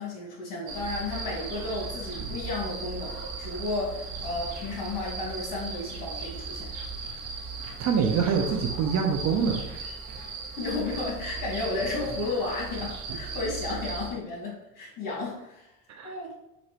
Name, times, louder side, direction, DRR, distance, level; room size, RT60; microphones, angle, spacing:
voice 1, 0.0-6.7 10.6-15.7 16.0-16.4, left 3 dB, 55° left, -3 dB, 1.7 m, -33 dB
sound 1, 0.7-14.1, right 4 dB, 60° right, 1.3 m, -37 dB
voice 2, 7.8-9.6 13.1-13.2 15.9-16.1, right 6 dB, 45° right, 3 dB, 0.6 m, -25 dB
6.6 x 2.6 x 3.0 m, 0.85 s
supercardioid pair, 100°, 39 cm